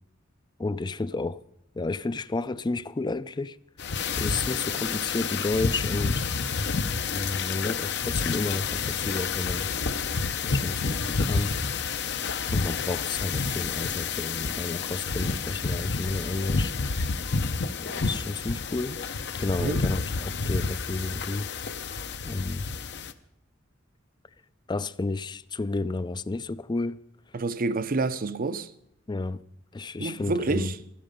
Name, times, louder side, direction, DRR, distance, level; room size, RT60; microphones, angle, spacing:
voice 1, 0.6-1.4 1.7-3.6 4.2-6.3 7.1-9.7 10.4-11.6 12.5-16.7 17.8-19.0 19.4-21.5 22.2-22.7 24.7-27.0 29.1-29.4 29.7-30.7, left 3 dB, 20° left, 0.4 m, -31 dB
sound 1, 3.8-23.1, left 4 dB, 60° left, 0.8 m, -29 dB
voice 2, 27.3-28.7 30.0-30.8, right 3 dB, 45° right, 0.6 m, -28 dB
15.5 x 13.0 x 5.2 m
head